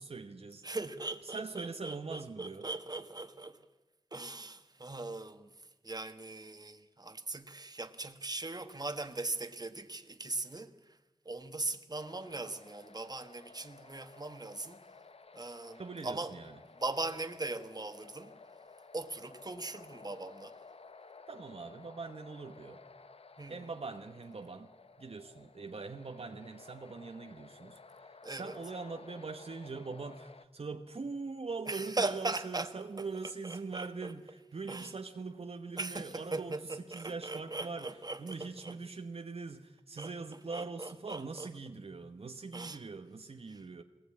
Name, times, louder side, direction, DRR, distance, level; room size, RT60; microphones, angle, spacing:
voice 1, 0.0-0.6 1.2-2.7 15.7-16.6 21.3-22.8 23.5-24.7 25.0-36.6 36.9-37.9 38.2-43.8, right 4 dB, 70° right, 1.1 m, -42 dB
voice 2, 0.6-3.6 4.1-5.5 5.8-10.7 11.2-14.8 15.3-16.3 16.7-18.4 18.9-20.5 23.4-23.6 28.2-28.6 31.7-32.7 33.0-33.1 33.4-34.1 34.7-34.9 35.8-38.8 40.0-40.1 40.5-41.5 42.5-42.8 43.5-43.6, right 2 dB, 40° right, 1.6 m, -39 dB
sound 1, 11.9-30.5, left 4 dB, 70° left, 0.9 m, -55 dB
21.5 x 18.5 x 8.6 m
wide cardioid pair, 55°, 11 cm